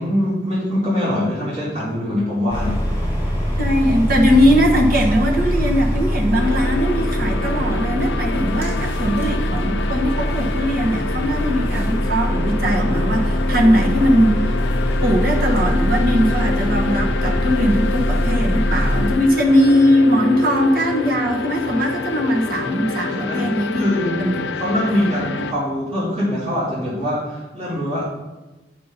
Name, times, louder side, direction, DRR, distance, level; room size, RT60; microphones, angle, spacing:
voice 1, 0.0-2.7 23.2-23.5 23.7-24.3 24.6-28.0, left 1 dB, 40° right, -9 dB, 2.8 m, -23 dB
sound 1, 2.5-19.1, equal, 10° right, 2.4 m, -22 dB
voice 2, 3.6-14.4 15.0-23.9 24.2-24.4 24.9-25.2, equal, 55° right, 0 dB, 1.2 m, -19 dB
sound 2, 6.3-25.5, left 4 dB, 85° left, 0.5 m, -27 dB
8.5 x 5.5 x 4.0 m, 1.1 s
head